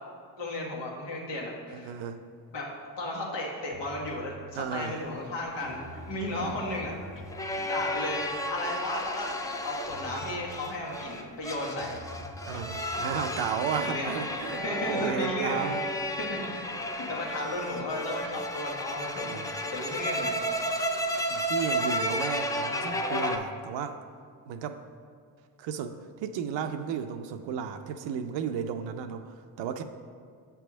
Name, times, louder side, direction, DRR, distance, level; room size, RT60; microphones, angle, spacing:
voice 1, 0.4-1.9 2.5-2.7 3.0-6.9 7.6-9.3 9.6-12.0 13.6-16.7 17.0-20.4, left 1 dB, 75° left, -2 dB, 1.5 m, -34 dB
voice 2, 1.7-2.2 4.6-5.0 12.5-15.8 19.2-19.5 21.3-24.0 24.5-24.8 25.6-29.8, right 7 dB, 75° right, 7 dB, 0.6 m, -34 dB
sound 1, 3.7-4.3 4.8-5.3 5.6-7.4 7.9-8.2 8.7-8.9 9.4-10.5 11.0-11.5 11.8-13.6 14.1-14.3 14.8-15.1 15.6-15.8, equal, 45° left, 1.0 m, -46 dB
sound 2, 5.6-23.4, equal, 10° left, 0.5 m, -33 dB
7.2 x 3.4 x 6.0 m, 2.2 s
supercardioid pair, 60°, 44 cm